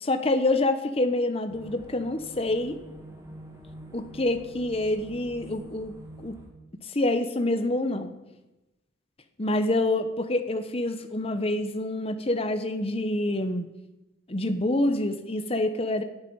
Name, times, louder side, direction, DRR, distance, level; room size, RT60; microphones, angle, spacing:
voice 1, 0.0-2.8 3.9-5.9 6.2-6.3 6.9-8.1 9.4-13.6 14.3-16.0, left 2 dB, 30° left, 8 dB, 0.9 m, -26 dB
sound 1, 1.5-6.5, right 1 dB, 15° right, 2.3 m, -46 dB
9.1 x 8.7 x 8.7 m, 0.99 s
head